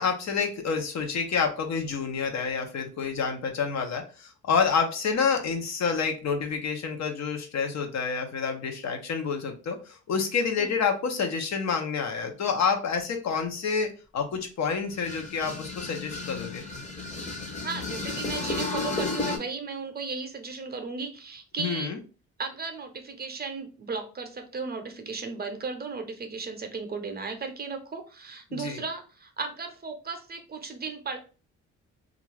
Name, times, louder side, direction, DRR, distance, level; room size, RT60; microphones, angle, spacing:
voice 1, 0.0-16.6 21.6-22.0 28.5-28.8, left 5 dB, 60° left, 4 dB, 0.7 m, -28 dB
sound 1, 14.9-19.4, left 3 dB, 25° left, 0.8 m, -33 dB
voice 2, 17.6-21.9 22.4-31.2, right 4 dB, 30° right, 6 dB, 0.6 m, -35 dB
2.5 x 2.3 x 3.2 m, 0.34 s
cardioid pair, 90°, 30 cm